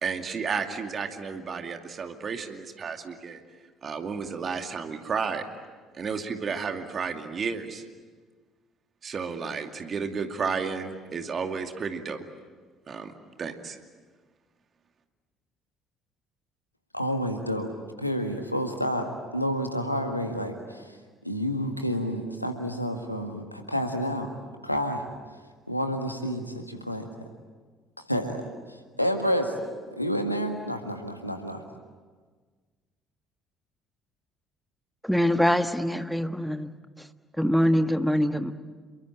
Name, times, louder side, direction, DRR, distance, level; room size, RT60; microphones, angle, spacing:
voice 1, 0.0-3.4 3.8-5.5 5.9-7.8 9.0-12.2 12.9-13.1 13.4-13.8, right 5 dB, 35° right, 2.4 m, -32 dB
voice 2, 16.9-17.7 18.0-19.1 19.3-21.0 21.2-24.3 24.6-25.1 25.7-27.1 28.1-29.6 29.9-31.6, equal, 90° left, 1.8 m, -29 dB
voice 3, 35.0-36.7 37.0-37.1 37.4-38.5, equal, ahead, 1.5 m, -24 dB
28.0 x 23.0 x 8.9 m
figure-of-eight pair, 50°, 0 cm